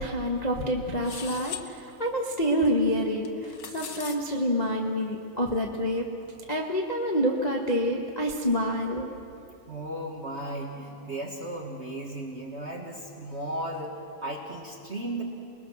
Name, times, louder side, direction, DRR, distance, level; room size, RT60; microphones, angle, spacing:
voice 1, 0.0-3.3 3.7-6.1 6.5-9.1, equal, 25° left, 0 dB, 0.8 m, -27 dB
sound 1, 1.0-1.7 3.2-4.2, left 7 dB, 55° left, 1.3 m, -39 dB
voice 2, 9.7-15.2, right 1 dB, 30° right, 0 dB, 1.4 m, -35 dB
28.0 x 19.5 x 6.5 m, 2.9 s
omnidirectional pair, 3.4 m